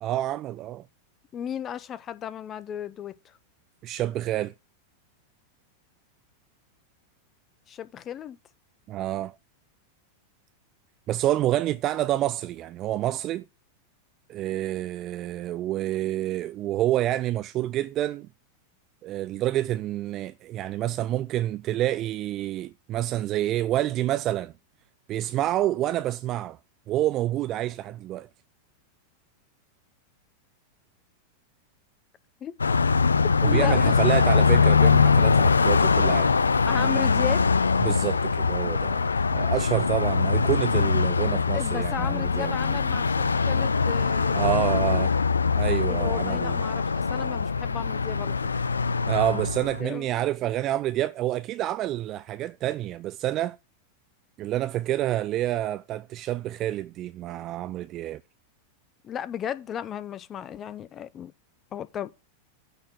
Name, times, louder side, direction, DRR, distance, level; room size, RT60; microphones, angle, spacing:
voice 1, 0.0-0.8 3.8-4.5 8.9-9.3 11.1-13.4 14.3-18.3 19.0-24.5 25.1-26.6 26.9-28.3 33.4-36.3 37.8-42.5 44.3-45.1 45.6-46.6 49.1-53.6 54.4-58.2, right 13 dB, 35° right, 0.4 m, -28 dB
voice 2, 1.3-3.4 7.7-8.4 32.4-32.5 33.4-34.2 36.7-37.4 41.5-45.1 45.9-48.5 49.8-50.3 59.0-61.3 61.7-62.1, left 9 dB, 25° left, 0.7 m, -35 dB
Car passing by, 32.6-49.8, left 5 dB, 75° left, 0.4 m, -22 dB
9.6 x 4.3 x 6.0 m
figure-of-eight pair, 90°, 0 cm